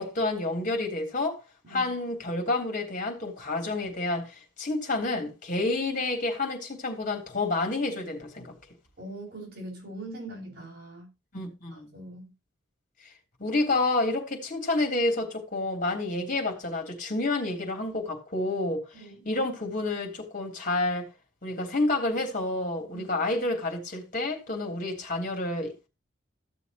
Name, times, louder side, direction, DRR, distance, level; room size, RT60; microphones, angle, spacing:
voice 1, 0.0-1.4 1.7-8.5 11.3-11.9 13.4-19.0 19.2-21.1 21.4-25.9, left 2 dB, 45° left, 3.2 m, -29 dB
voice 2, 9.0-11.1 11.7-12.3 18.9-19.2 22.9-23.1, right 1 dB, 55° right, 7.1 m, -42 dB
15.0 x 7.0 x 2.9 m
head